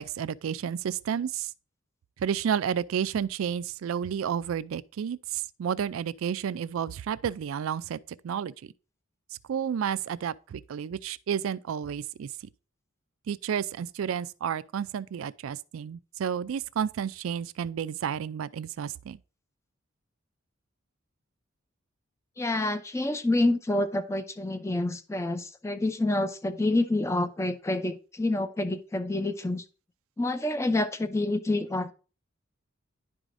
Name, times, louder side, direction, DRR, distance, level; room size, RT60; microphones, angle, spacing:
voice 1, 0.0-1.5 2.2-8.7 9.5-12.3 13.3-19.2, right 8 dB, 75° right, 0.3 m, -31 dB
voice 2, 22.4-29.6 30.2-31.9, left 2 dB, 15° left, 0.4 m, -28 dB
10.5 x 4.8 x 2.5 m
head